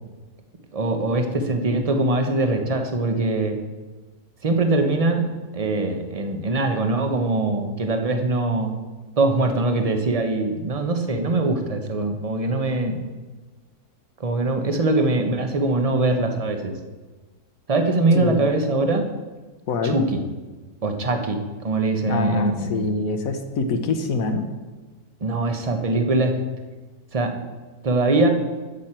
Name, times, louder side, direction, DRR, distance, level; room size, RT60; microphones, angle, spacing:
voice 1, 0.7-3.6 4.4-8.8 9.2-13.0 14.2-16.7 17.7-19.1 19.8-20.2 20.8-22.9 25.2-26.4 27.1-27.4 27.8-28.3, right 2 dB, 30° right, 5 dB, 0.8 m, -22 dB
voice 2, 18.1-18.5 19.7-20.0 22.0-24.5, left 4 dB, 70° left, 7 dB, 1.3 m, -25 dB
10.5 x 8.2 x 4.4 m, 1.3 s
omnidirectional pair, 1.6 m